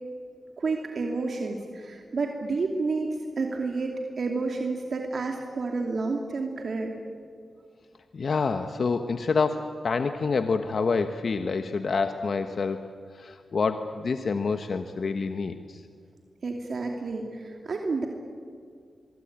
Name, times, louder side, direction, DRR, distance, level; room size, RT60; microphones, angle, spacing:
voice 1, 0.6-6.9 16.4-18.1, right 3 dB, 60° right, 2 dB, 2.8 m, -30 dB
voice 2, 8.1-12.9 13.1-15.8, left 4 dB, 60° left, 8 dB, 1.3 m, -27 dB
24.0 x 24.0 x 8.9 m, 2.3 s
cardioid pair, 75°, 0 cm